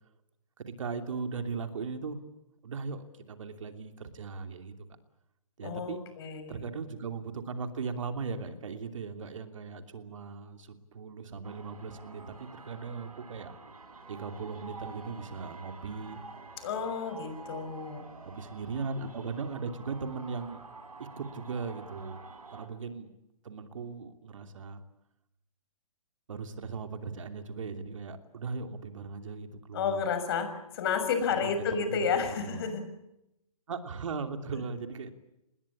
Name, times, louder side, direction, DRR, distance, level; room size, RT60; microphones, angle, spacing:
voice 1, 0.6-2.2 2.6-4.7 5.6-6.0 6.5-13.5 14.1-16.2 18.2-20.6 21.2-22.2 22.5-23.1 23.4-24.8 26.3-30.0 31.4-32.1 32.4-32.6 33.7-35.1, right 5 dB, 60° right, 7 dB, 2.9 m, -38 dB
voice 2, 5.6-6.6 16.6-18.0 29.7-32.8, left 6 dB, 40° left, 9 dB, 6.4 m, -31 dB
sound 1, 11.4-22.7, right 3 dB, 80° right, 5.1 m, -48 dB
27.5 x 20.5 x 8.6 m, 0.86 s
hypercardioid pair, 145°, 19 cm